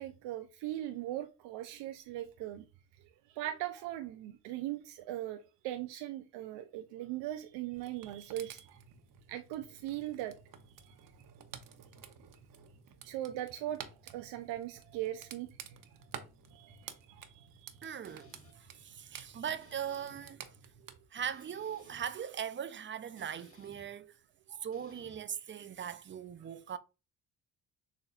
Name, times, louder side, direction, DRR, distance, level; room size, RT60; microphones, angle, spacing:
voice 1, 0.0-2.7 3.3-8.8 9.3-10.3 10.8-11.1 13.0-15.5 16.5-18.3 18.7-19.2 24.5-24.6, right 13 dB, 75° right, 0.6 m, -40 dB
sound 1, 7.7-20.9, right 7 dB, 50° right, 0.9 m, -52 dB
voice 2, 17.8-18.3 18.6-20.4 21.1-24.1 24.6-26.8, right 8 dB, 30° right, 0.5 m, -40 dB
sound 2, 18.1-18.5 19.6-20.3 21.2-22.1 23.2-23.9 24.7-25.2, left 1 dB, 30° left, 1.5 m, -59 dB
6.6 x 2.6 x 2.4 m
hypercardioid pair, 55°, 43 cm